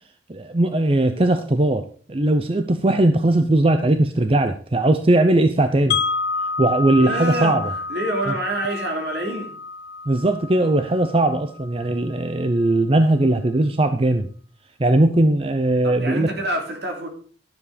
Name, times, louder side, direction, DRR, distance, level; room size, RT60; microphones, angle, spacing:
voice 1, 0.3-6.0 6.6-7.6 10.1-14.3 14.8-16.3, right 2 dB, 30° right, 8 dB, 0.6 m, -19 dB
Wind chime, 5.9-11.9, left 4 dB, 70° left, 1.3 m, -29 dB
voice 2, 7.0-7.6 7.9-9.5 15.8-17.1, right 1 dB, 65° right, 2 dB, 3.2 m, -27 dB
12.5 x 7.4 x 5.1 m, 0.42 s
head